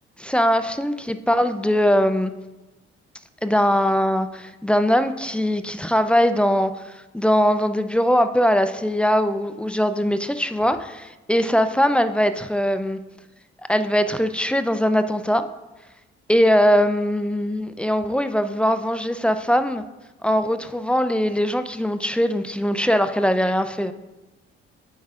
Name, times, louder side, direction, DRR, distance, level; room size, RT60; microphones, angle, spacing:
voice 1, 0.2-2.3 3.4-6.7 7.1-13.0 13.7-15.5 16.3-19.8 20.2-23.9, equal, 5° left, 10 dB, 0.4 m, -21 dB
9.2 x 6.1 x 2.4 m, 1.1 s
hypercardioid pair, 45°, 32 cm